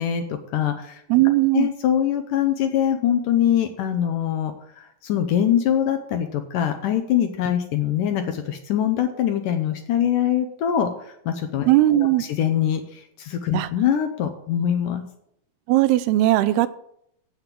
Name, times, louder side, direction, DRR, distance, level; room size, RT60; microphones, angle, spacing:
voice 1, 0.0-1.0 1.5-10.9 11.3-15.0, left 10 dB, 75° left, 7 dB, 2.1 m, -23 dB
voice 2, 1.1-1.7 11.7-12.2 13.5-13.7 15.7-16.7, right 16 dB, 85° right, 14 dB, 2.6 m, -18 dB
8.6 x 8.0 x 7.4 m, 0.71 s
omnidirectional pair, 4.5 m